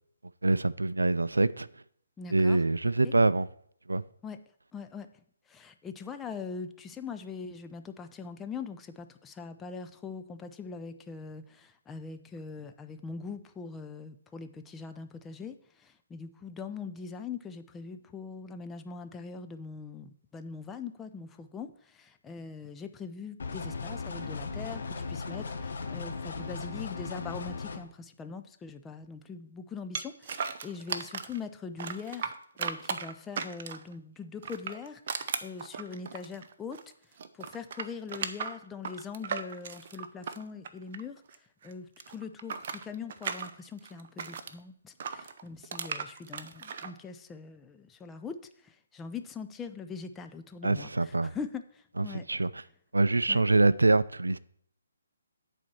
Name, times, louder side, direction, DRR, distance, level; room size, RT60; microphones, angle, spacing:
voice 1, 0.4-1.7 2.3-3.5 3.9-4.0 50.6-51.3 52.0-52.6 52.9-54.4, right 2 dB, 80° right, 0.3 m, -25 dB
voice 2, 2.2-2.6 3.0-3.1 4.2-4.4 4.7-5.1 5.5-36.8 37.3-41.2 41.6-52.3 53.3-53.4, left 5 dB, 10° left, 0.5 m, -42 dB
sound 1, 23.4-27.8, left 4 dB, 60° left, 1.1 m, -37 dB
sound 2, 29.9-31.4 31.8-33.9 34.4-36.9 37.2-41.3 41.6-44.5 45.0-46.9, right 6 dB, 45° right, 0.6 m, -37 dB
8.6 x 4.3 x 7.0 m
figure-of-eight pair, 140°, 0 cm